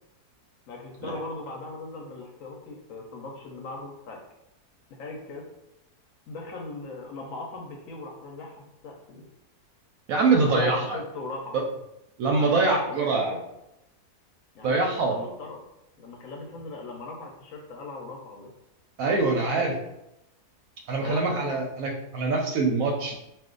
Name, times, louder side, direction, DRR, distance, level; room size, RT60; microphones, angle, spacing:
voice 1, 0.7-4.2 5.0-5.5 6.3-9.2 10.3-11.6 12.4-13.4 14.5-15.6 16.0-18.5 19.3-19.7 21.0-21.6, left 3 dB, 70° left, 0 dB, 0.9 m, -39 dB
voice 2, 10.1-11.0 11.5-11.6 12.2-13.4 14.6-15.3 19.0-19.7 20.9-23.2, right 3 dB, 70° right, 1 dB, 0.9 m, -24 dB
2.5 x 2.3 x 3.7 m, 0.87 s
omnidirectional pair, 1.7 m